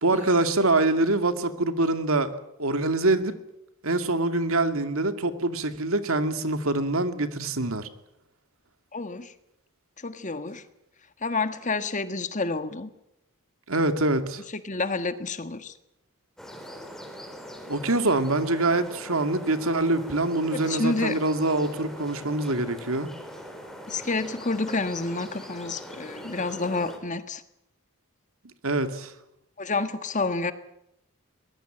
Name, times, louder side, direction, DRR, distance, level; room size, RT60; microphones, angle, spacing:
voice 1, 0.0-2.3 2.6-3.3 3.8-7.9 13.7-14.4 17.7-23.1 28.6-29.1, right 2 dB, 70° right, 2.3 m, -25 dB
voice 2, 8.9-9.3 10.0-10.6 11.2-12.9 14.5-15.7 20.5-21.2 23.9-27.4 29.6-30.5, left 3 dB, 35° left, 1.5 m, -29 dB
sound 1, 16.4-27.0, equal, ahead, 4.0 m, -42 dB
23.0 x 20.5 x 9.0 m
head